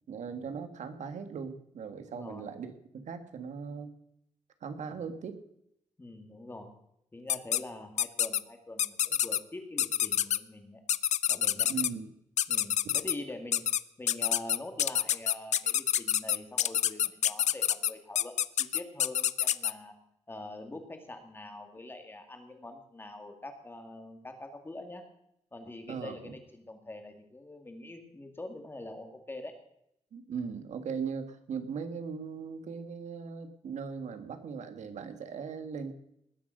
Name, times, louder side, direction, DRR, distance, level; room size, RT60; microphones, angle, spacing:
voice 1, 0.1-3.9 4.6-5.4 11.6-12.1 25.9-26.4 30.1-35.9, right 6 dB, 85° right, 8 dB, 1.6 m, -39 dB
voice 2, 2.1-2.5 4.9-5.0 6.0-6.7 7.1-10.8 11.3-11.7 12.5-13.7 14.0-19.9 20.3-25.0 25.5-29.6, left 2 dB, 20° left, 5 dB, 2.2 m, -44 dB
sound 1, 7.3-7.6 8.0-8.4 8.8-9.4 9.8-10.4 10.9-11.9 12.4-13.1 13.5-13.8 14.1-19.7, left 10 dB, 80° left, 0.5 m, -27 dB
20.0 x 7.5 x 6.5 m, 0.75 s
wide cardioid pair, 145°, 12 cm